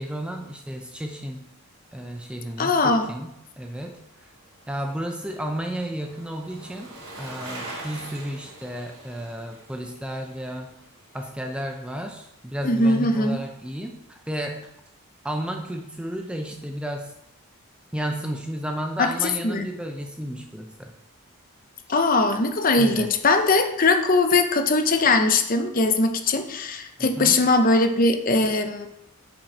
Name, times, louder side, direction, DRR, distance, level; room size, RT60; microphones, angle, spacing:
voice 1, 0.0-1.4 1.9-4.3 4.7-10.7 11.1-14.7 15.2-17.1 17.9-20.9 22.8-23.1 27.0-27.4, equal, 5° right, 3 dB, 0.4 m, -33 dB
voice 2, 2.6-3.1 12.6-13.4 19.0-19.1 19.4-19.7 21.9-28.9, left 3 dB, 40° left, 7 dB, 0.7 m, -20 dB
Bicycle, 3.6-12.1 12.4-12.5, right 2 dB, 85° right, 2.6 m, -44 dB
7.2 x 5.2 x 4.4 m, 0.81 s
head